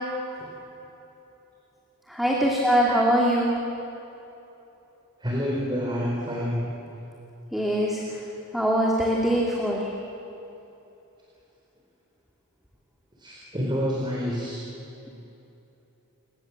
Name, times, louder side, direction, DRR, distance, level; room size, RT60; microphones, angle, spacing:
voice 1, 2.1-3.6 7.5-8.0 8.5-9.9, equal, ahead, -3 dB, 2.7 m, -22 dB
voice 2, 5.2-6.6 8.1-8.2 13.2-14.6, equal, 20° right, -3 dB, 4.3 m, -28 dB
30.0 x 20.5 x 7.5 m, 2.9 s
head